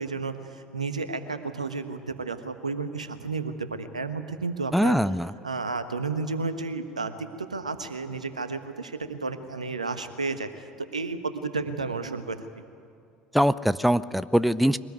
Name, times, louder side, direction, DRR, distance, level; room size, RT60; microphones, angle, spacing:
voice 1, 0.0-5.0 5.4-10.5 10.9-12.5, right 4 dB, 85° right, 10 dB, 1.2 m, -32 dB
voice 2, 4.7-5.3 13.3-14.8, equal, ahead, 17 dB, 0.6 m, -22 dB
23.0 x 19.0 x 9.5 m, 2.3 s
figure-of-eight pair, 65°, 4 cm